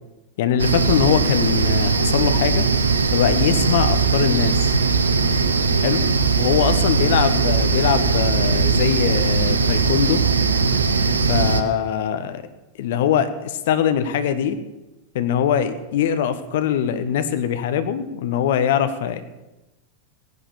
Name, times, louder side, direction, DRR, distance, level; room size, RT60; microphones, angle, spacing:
voice 1, 0.4-2.7 3.1-4.7 5.8-6.0 6.4-10.2 11.3-12.4 12.8-14.6 15.1-19.2, left 9 dB, 55° left, 11 dB, 1.3 m, -22 dB
sound 1, 0.6-11.6, right 4 dB, 75° right, 1.3 m, -19 dB
17.5 x 11.0 x 7.2 m, 1.0 s
figure-of-eight pair, 90°, 0 cm